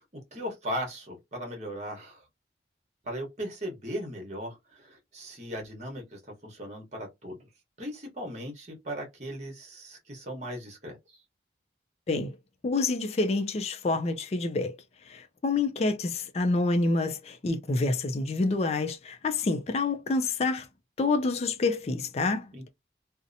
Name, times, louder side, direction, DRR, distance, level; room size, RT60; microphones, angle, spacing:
voice 1, 0.0-2.2 3.0-7.4 7.8-11.2 22.5-22.7, equal, 40° right, 1.0 m, -38 dB
voice 2, 12.6-14.8 15.1-20.7 21.0-22.5, left 3 dB, 35° left, 0.3 m, -27 dB
2.7 x 2.0 x 2.5 m
head